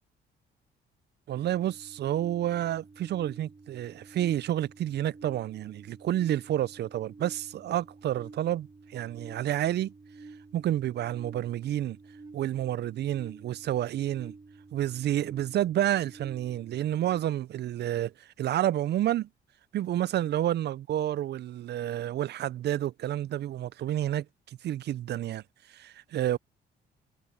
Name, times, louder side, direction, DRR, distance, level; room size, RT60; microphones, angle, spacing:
sound 1, 1.3-17.2, right 3 dB, 20° right, 1.4 m, -51 dB
voice 1, 1.3-9.9 10.5-12.0 12.3-14.3 14.7-19.3 19.7-25.4 25.7-26.4, right 12 dB, 60° right, 0.4 m, -30 dB
cardioid pair, 90°, 20 cm